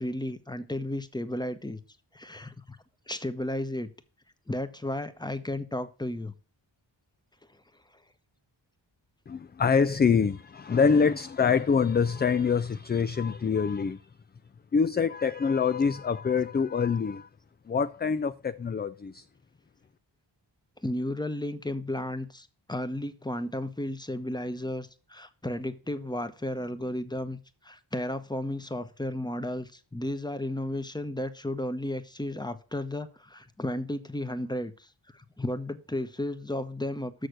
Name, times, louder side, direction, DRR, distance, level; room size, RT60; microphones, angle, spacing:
voice 1, 0.0-1.8 2.1-2.8 3.1-3.9 4.5-6.3 20.8-27.4 27.6-37.3, left 1 dB, 10° left, 1.0 m, -33 dB
voice 2, 9.3-14.0 14.7-17.3 17.7-19.2, left 6 dB, 25° left, 0.3 m, -25 dB
6.5 x 6.4 x 6.4 m
cardioid pair, 55°, 46 cm